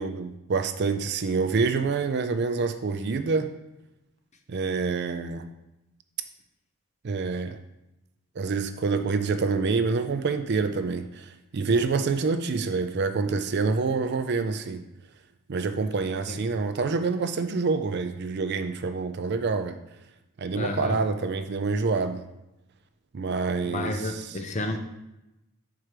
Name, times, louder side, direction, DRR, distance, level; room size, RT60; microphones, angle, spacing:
voice 1, 0.0-3.5 4.5-5.5 7.0-7.6 8.4-14.8 15.5-19.8 20.4-22.2 23.1-24.4, right 4 dB, 50° right, 9 dB, 0.4 m, -27 dB
voice 2, 20.5-21.0 23.6-24.8, left 2 dB, 30° left, 5 dB, 0.6 m, -31 dB
4.9 x 4.6 x 5.9 m, 0.92 s
head